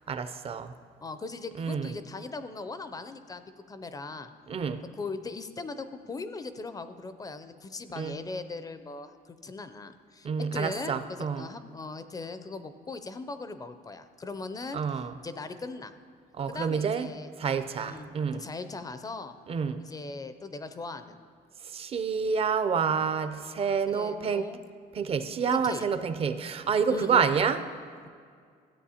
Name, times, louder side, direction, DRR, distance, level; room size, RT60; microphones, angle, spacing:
voice 1, 0.1-0.7 1.6-1.9 4.5-4.8 8.0-8.2 10.2-11.5 14.7-15.1 16.4-17.1 17.4-18.4 19.5-19.8 21.6-24.4 24.9-27.6, right 6 dB, 35° right, 11 dB, 0.5 m, -28 dB
voice 2, 1.0-3.4 3.7-4.3 5.0-14.8 15.2-16.0 16.5-17.3 17.8-19.3 19.8-21.2 23.9-24.6 25.5-25.9 26.9-27.2, left 3 dB, 20° left, 11 dB, 0.4 m, -39 dB
13.5 x 7.9 x 2.8 m, 2.1 s
cardioid pair, 110°, 17 cm